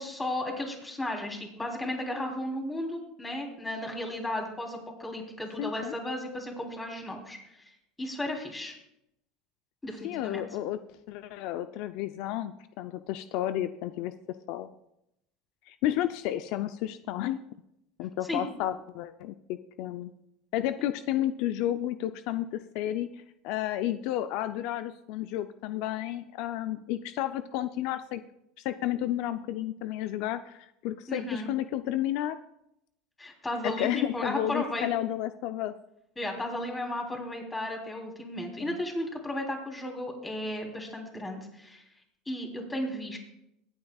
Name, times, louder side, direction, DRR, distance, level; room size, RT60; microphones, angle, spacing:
voice 1, 0.0-7.7 8.0-8.7 9.8-10.4 18.3-18.4 31.1-31.5 33.2-34.9 36.2-41.8 42.2-43.2, left 1 dB, 15° left, 1 dB, 3.3 m, -34 dB
voice 2, 5.6-5.9 10.0-10.8 11.1-14.1 14.5-14.7 15.7-17.4 18.0-20.1 20.5-28.2 28.6-32.4 33.6-35.7 38.6-38.8, left 12 dB, 65° left, 11 dB, 0.5 m, -32 dB
23.5 x 8.8 x 2.4 m, 0.81 s
supercardioid pair, 105°, 0 cm